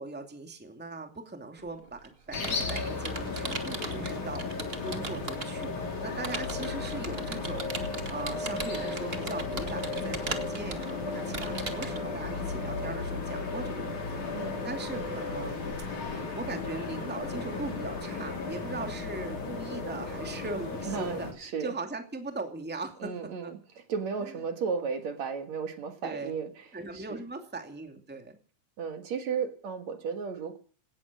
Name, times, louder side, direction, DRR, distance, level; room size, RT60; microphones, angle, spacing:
voice 1, 0.0-5.7 6.0-23.1 23.4-23.5 24.2-24.3 26.0-26.3 26.7-28.4, right 3 dB, 5° right, 5 dB, 2.2 m, -40 dB
Computer keyboard, 1.6-5.7 6.2-12.0, right 3 dB, 25° right, 1.3 m, -39 dB
sound 1, 2.3-21.3, left 3 dB, 70° left, 5.7 m, -35 dB
voice 2, 20.8-21.7 23.0-23.6 23.9-26.7 26.9-27.2 28.8-30.6, right 6 dB, 60° right, 7 dB, 2.9 m, -34 dB
18.0 x 12.5 x 6.3 m, 0.42 s
omnidirectional pair, 3.6 m